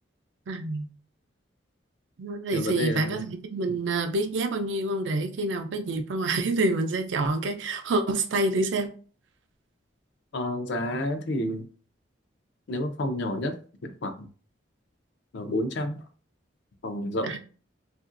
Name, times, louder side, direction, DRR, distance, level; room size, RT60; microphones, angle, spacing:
voice 1, 0.5-0.9 2.2-8.9 17.3-17.4, right 2 dB, 75° right, 0.4 m, -27 dB
voice 2, 2.5-3.2 10.3-11.7 12.7-13.6 13.8-14.3 15.3-16.0 16.8-17.4, left 1 dB, 65° left, 0.5 m, -30 dB
2.8 x 2.4 x 2.5 m
head